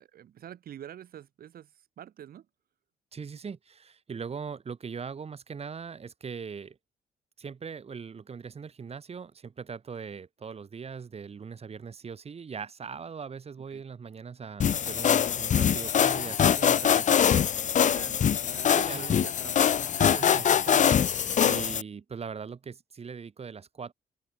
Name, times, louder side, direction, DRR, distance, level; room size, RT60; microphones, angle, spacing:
voice 1, 0.0-2.5 13.7-13.8 16.0-16.4 17.3-17.4 17.8-19.6 20.0-20.4, right 10 dB, 70° right, 6.4 m, -45 dB
voice 2, 3.1-6.8 7.4-17.2 18.8-19.3 20.2-21.0 21.4-23.9, right 6 dB, 40° right, 7.3 m, -40 dB
sound 1, 14.6-21.8, left 8 dB, 50° left, 1.1 m, -23 dB
open air
cardioid pair, 110°, 16 cm